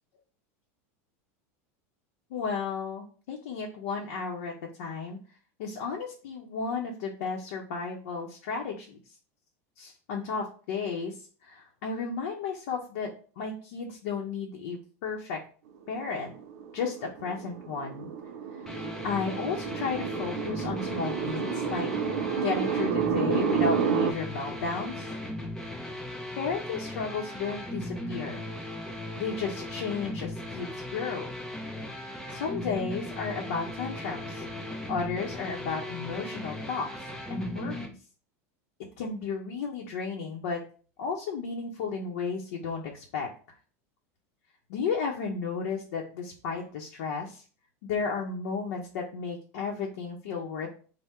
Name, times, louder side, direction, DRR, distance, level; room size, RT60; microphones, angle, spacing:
voice 1, 2.3-5.2 5.6-9.0 9.8-15.4 15.9-16.3 16.7-18.1 18.6-18.7 19.0-21.9 22.4-25.1 26.4-28.5 29.2-31.3 32.3-34.4 34.9-36.9 37.3-37.9 39.0-40.6 41.0-43.6 44.7-47.4 47.8-50.7, left 5 dB, 75° left, -1 dB, 0.7 m, -33 dB
sound 1, 16.1-24.1, right 7 dB, 90° right, 0.5 m, -30 dB
sound 2, 18.7-37.9, left 1 dB, 5° left, 0.6 m, -37 dB
3.5 x 2.1 x 4.2 m, 0.40 s
supercardioid pair, 155°, 8 cm